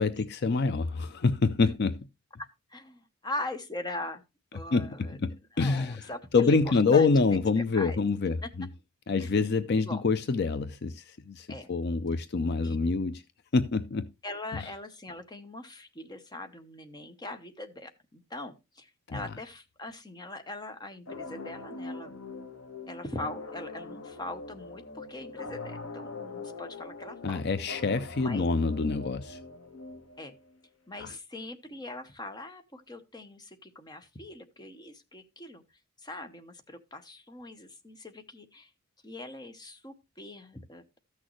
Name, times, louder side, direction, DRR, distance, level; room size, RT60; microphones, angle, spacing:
voice 1, 0.0-1.9 4.7-6.1 6.3-8.7 9.1-13.2 13.5-14.1 14.5-14.7 19.1-19.2 27.2-29.4 31.0-31.1, left 4 dB, 50° left, 0.5 m, -26 dB
voice 2, 2.4-4.2 4.5-5.2 5.5-8.0 9.2-10.0 11.5-11.7 12.6-12.8 14.2-22.2 22.9-27.4 28.2-28.5 30.2-30.3 30.9-35.6 36.0-38.7 39.0-41.0, left 2 dB, 20° left, 0.8 m, -41 dB
sound 1, 21.1-30.5, left 3 dB, 65° left, 1.4 m, -42 dB
14.0 x 6.4 x 3.1 m
head